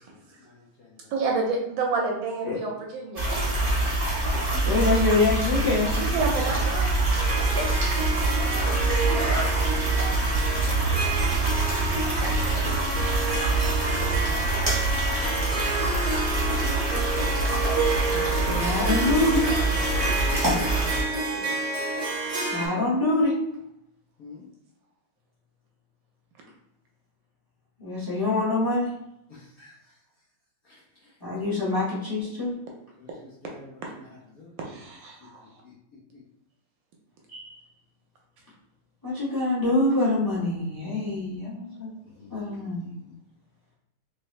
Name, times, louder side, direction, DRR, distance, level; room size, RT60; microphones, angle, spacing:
voice 1, 0.1-1.2 6.9-7.2 8.3-9.6 9.9-11.0 12.4-12.9 19.1-21.3 24.2-24.5 29.3-30.0 30.6-31.1 33.0-34.9 35.2-35.3 35.6-36.2 42.2-43.1, left 1 dB, 60° left, -7 dB, 1.0 m, -41 dB
voice 2, 1.1-3.2 5.9-7.0 21.3-21.6 34.6-35.4, right 4 dB, 75° right, 0 dB, 1.2 m, -29 dB
sound 1, 3.2-21.0, right 2 dB, 15° right, 0.8 m, -25 dB
voice 3, 4.6-5.9 7.6-7.8 18.1-19.4 22.5-23.3 27.8-28.9 31.2-32.5 37.3-37.6 39.0-41.9 42.3-42.9, left 2 dB, 15° left, -7 dB, 0.9 m, -25 dB
Harp, 7.2-22.7, right 3 dB, 50° right, 0.8 m, -30 dB
3.3 x 3.2 x 3.2 m, 0.77 s
omnidirectional pair, 2.3 m